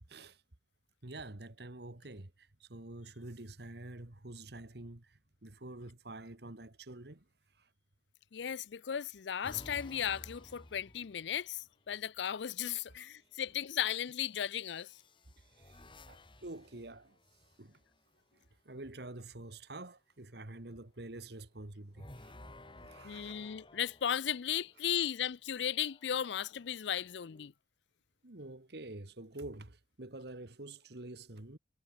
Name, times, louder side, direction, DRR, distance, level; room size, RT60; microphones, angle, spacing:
voice 1, 0.1-0.4 1.0-7.3 7.6-7.7 10.0-10.1 13.4-13.5 15.4-17.2 17.6-17.8 18.3-22.4 22.8-23.5 28.2-31.6, right 2 dB, 60° right, 1.8 m, -48 dB
voice 2, 8.3-14.9 23.0-27.5, left 9 dB, 75° left, 0.5 m, -36 dB
sound 1, 9.4-11.7 13.0-13.4 14.6-18.0 21.9-24.9 25.6-27.5, left 1 dB, 25° left, 3.8 m, -55 dB
head